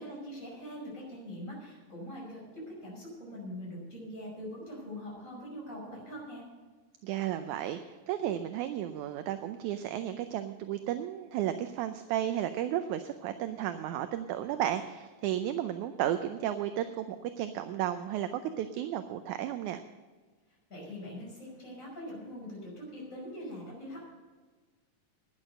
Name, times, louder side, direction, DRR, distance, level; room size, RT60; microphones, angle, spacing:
voice 1, 0.0-6.4 20.7-24.0, equal, 20° left, -3 dB, 5.8 m, -43 dB
voice 2, 7.0-19.8, right 11 dB, 75° right, 9 dB, 1.9 m, -33 dB
12.5 x 10.5 x 6.5 m, 1.4 s
omnidirectional pair, 3.9 m